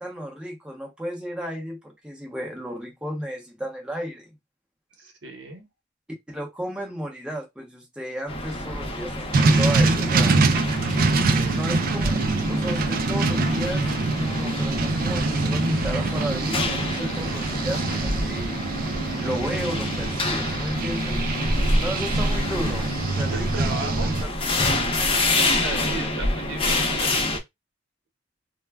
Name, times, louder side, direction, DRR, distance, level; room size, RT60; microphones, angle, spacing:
voice 1, 0.0-4.3 6.3-10.4 11.5-12.1 12.5-13.9 14.1-18.6 19.2-21.2 21.8-24.3 25.5-25.9, equal, 5° right, 0.7 m, -33 dB
voice 2, 5.0-5.6 11.2-11.6 23.3-24.1 25.3-27.4, right 2 dB, 75° right, 0.9 m, -35 dB
sound 1, 8.3-27.4, left 2 dB, 30° left, 0.6 m, -28 dB
sound 2, 9.3-24.2, right 3 dB, 50° right, 0.4 m, -24 dB
2.2 x 2.1 x 3.3 m
head